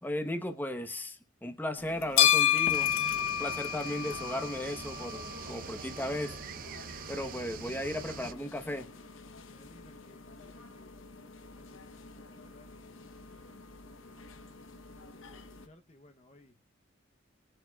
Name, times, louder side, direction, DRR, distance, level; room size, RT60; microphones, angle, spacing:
voice 1, 0.0-2.9 3.4-6.4 7.1-8.9, left 1 dB, 10° left, 1.0 m, -36 dB
sound 1, 1.8-15.6, left 10 dB, 90° left, 1.0 m, -34 dB
sound 2, 2.7-8.3, right 5 dB, 45° right, 0.7 m, -44 dB
voice 2, 8.2-9.1 9.5-11.1 11.4-13.6 13.8-14.3 14.9-16.5, left 2 dB, 35° left, 0.8 m, -61 dB
21.0 x 7.8 x 2.3 m
head